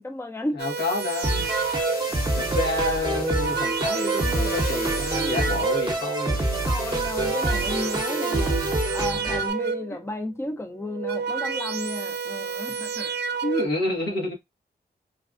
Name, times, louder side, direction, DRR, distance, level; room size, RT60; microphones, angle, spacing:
voice 1, 0.0-0.6 2.3-2.7 6.7-8.5 8.9-13.2, left 1 dB, 15° left, 0.6 m, -33 dB
voice 2, 0.5-1.4 2.5-6.4 8.3-8.7 13.4-14.3, left 2 dB, 85° left, 1.5 m, -29 dB
sound 1, 0.6-2.2 3.0-6.1 6.9-10.0 10.8-13.7, right 6 dB, 90° right, 0.4 m, -30 dB
sound 2, 0.8-8.8, left 4 dB, 60° left, 0.8 m, -39 dB
sound 3, 1.2-9.5, right 2 dB, 25° right, 0.8 m, -26 dB
3.3 x 2.4 x 2.5 m
cardioid pair, 50°, 17 cm